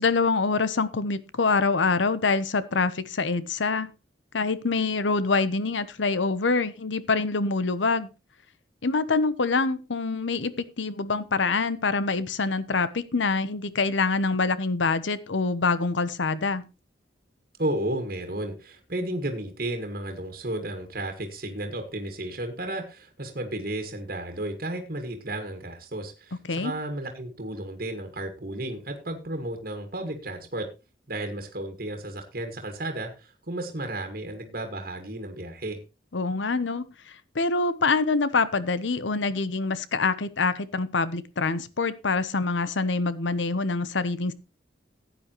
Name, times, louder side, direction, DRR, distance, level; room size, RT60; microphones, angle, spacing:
voice 1, 0.0-3.9 4.3-8.1 8.8-16.6 26.5-26.7 36.1-44.3, left 4 dB, 80° left, 15 dB, 0.9 m, -25 dB
voice 2, 17.6-30.7 31.1-35.8, right 1 dB, 50° right, 5 dB, 1.9 m, -33 dB
15.0 x 9.2 x 3.0 m, 0.29 s
head